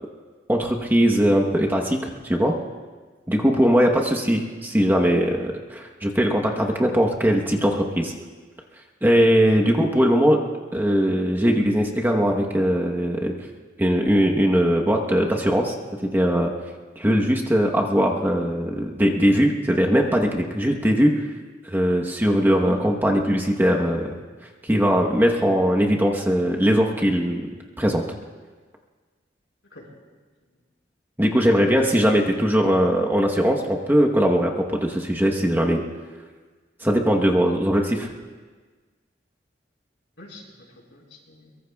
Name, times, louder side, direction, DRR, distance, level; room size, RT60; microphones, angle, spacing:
voice 1, 0.5-2.6 3.3-8.1 9.0-10.4 10.7-13.3 13.8-15.7 16.0-16.5 17.0-21.2 21.7-24.1 24.6-27.5 27.8-28.0 31.2-35.8 36.8-38.1, equal, 10° right, 0 dB, 1.0 m, -20 dB
voice 2, 37.3-37.7 40.2-41.6, left 1 dB, 75° left, -2 dB, 4.4 m, -45 dB
23.0 x 22.5 x 2.3 m, 1.4 s
head